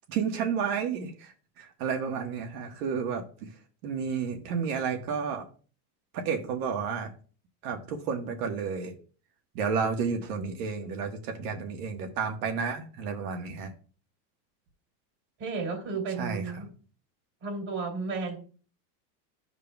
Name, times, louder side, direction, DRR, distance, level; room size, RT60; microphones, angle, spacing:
voice 1, 0.1-3.5 3.8-5.4 6.1-7.1 7.6-8.9 9.5-13.7 16.2-16.4, right 6 dB, 75° right, 5 dB, 1.6 m, -31 dB
voice 2, 15.4-16.7 17.4-18.4, right 4 dB, 45° right, 1 dB, 3.0 m, -33 dB
13.0 x 4.9 x 2.3 m, 0.39 s
supercardioid pair, 150°, 45 cm